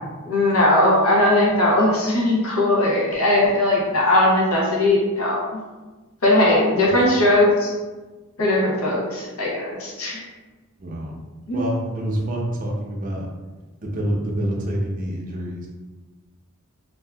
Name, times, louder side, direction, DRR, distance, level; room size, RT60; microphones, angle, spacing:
voice 1, 0.3-5.6 6.2-7.7 8.4-10.2 11.5-11.6, left 1 dB, 80° left, -4 dB, 0.9 m, -19 dB
voice 2, 10.8-11.1 11.5-13.3 13.8-15.7, equal, 40° right, -2 dB, 0.5 m, -27 dB
2.7 x 2.4 x 3.3 m, 1.3 s
head